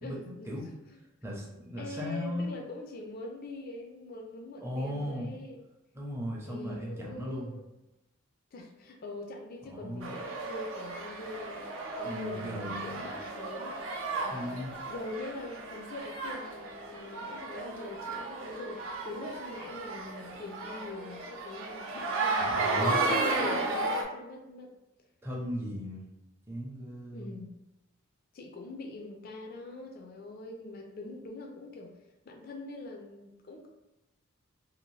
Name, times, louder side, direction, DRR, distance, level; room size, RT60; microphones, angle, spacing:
voice 1, 0.0-0.7 1.8-5.6 6.4-7.6 8.5-13.8 14.2-14.6 14.9-24.7 27.1-27.5 28.3-33.7, left 2 dB, 45° left, 2 dB, 0.3 m, -43 dB
voice 2, 1.2-2.5 4.6-5.3 5.9-7.5 9.7-10.1 12.0-13.0 14.3-14.7 22.4-23.0 25.2-26.0 26.5-27.4, equal, 10° right, -4 dB, 0.5 m, -37 dB
sound 1, 10.0-24.0, right 3 dB, 75° right, 0.5 m, -34 dB
2.6 x 2.4 x 3.1 m, 0.96 s
head